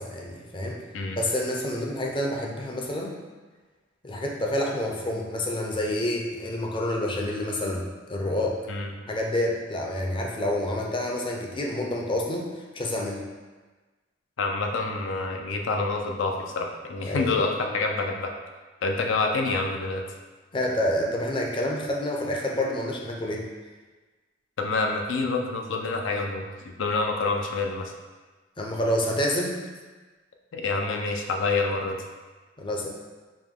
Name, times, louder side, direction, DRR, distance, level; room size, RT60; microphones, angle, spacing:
voice 1, 0.0-0.8 1.1-3.1 4.0-8.6 9.1-13.2 17.0-17.3 20.5-23.5 28.6-29.6 32.6-32.9, left 1 dB, 25° left, -1 dB, 0.5 m, -28 dB
voice 2, 14.4-18.3 18.8-20.0 24.6-27.9 30.5-32.0, left 3 dB, 75° left, 3 dB, 0.5 m, -27 dB
5.0 x 2.2 x 3.6 m, 1.3 s
head